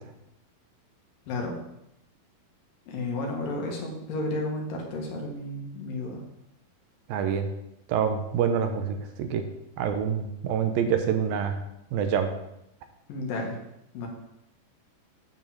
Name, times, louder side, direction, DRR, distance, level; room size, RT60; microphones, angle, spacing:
voice 1, 2.9-6.2 13.1-13.6 13.9-14.1, left 2 dB, 70° left, 0 dB, 3.4 m, -32 dB
voice 2, 7.1-7.5 7.9-9.4 9.8-11.6 11.9-12.3, right 7 dB, 80° right, 6 dB, 2.6 m, -26 dB
9.0 x 5.4 x 7.3 m, 0.83 s
omnidirectional pair, 4.2 m